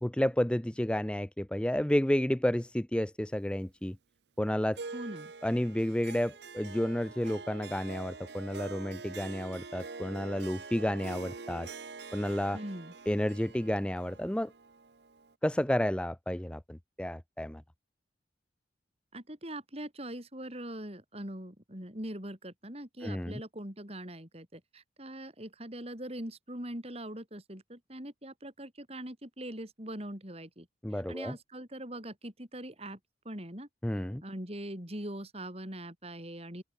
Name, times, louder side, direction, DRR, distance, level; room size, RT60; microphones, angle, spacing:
voice 1, 0.0-4.0 4.4-4.8 5.4-11.7 12.1-12.6 13.1-14.5 15.4-17.6 23.0-23.4 30.8-31.4 33.8-34.2, left 1 dB, 5° left, 0.5 m, -31 dB
Harp, 4.7-15.3, right 4 dB, 65° right, 0.9 m, -45 dB
voice 2, 4.9-5.3 12.5-12.9 19.1-33.0 33.2-33.7 34.2-36.6, right 1 dB, 35° right, 5.7 m, -42 dB
open air
head